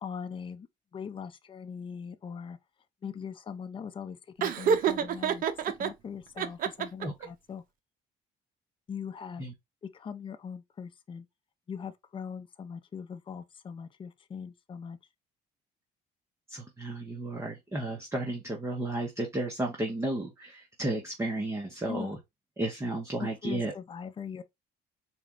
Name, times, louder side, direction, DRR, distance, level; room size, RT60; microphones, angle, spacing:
voice 1, 0.0-0.7 0.9-2.6 3.0-7.6 8.9-9.4 9.8-11.3 11.7-15.0 21.9-22.2 23.2-24.4, left 6 dB, 30° left, 0.6 m, -41 dB
Laughter, 4.4-5.9 6.4-7.3, right 7 dB, 55° right, 0.6 m, -27 dB
voice 2, 16.5-22.2 22.6-23.7, right 2 dB, 15° right, 0.9 m, -33 dB
4.2 x 2.3 x 3.7 m
cardioid pair, 110°, 17 cm